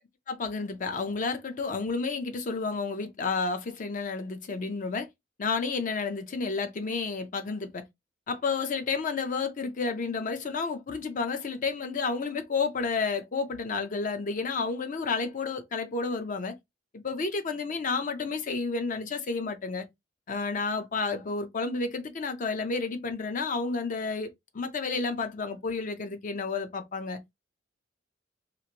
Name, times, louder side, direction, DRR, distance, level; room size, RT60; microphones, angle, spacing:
voice 1, 0.3-5.1 5.4-7.8 8.3-16.6 16.9-19.8 20.3-27.2, left 4 dB, 45° left, 0.5 m, -31 dB
2.9 x 2.5 x 2.8 m
head